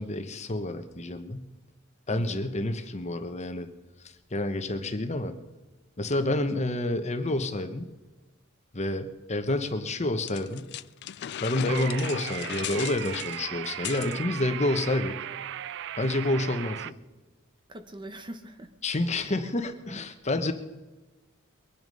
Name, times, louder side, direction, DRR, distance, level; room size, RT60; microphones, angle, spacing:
voice 1, 0.0-1.5 2.1-3.7 4.3-5.3 6.0-7.9 8.7-10.7 11.2-15.2 16.0-16.9 18.8-20.5, left 1 dB, 35° left, 8 dB, 1.0 m, -29 dB
voice 2, 2.1-2.4 17.7-18.7 19.3-20.1, right 1 dB, 25° right, 8 dB, 0.9 m, -43 dB
sound 1, 10.3-14.2, left 11 dB, 55° left, 0.4 m, -37 dB
sound 2, 11.7-16.9, right 11 dB, 60° right, 0.4 m, -37 dB
22.5 x 9.5 x 5.4 m, 1.2 s
head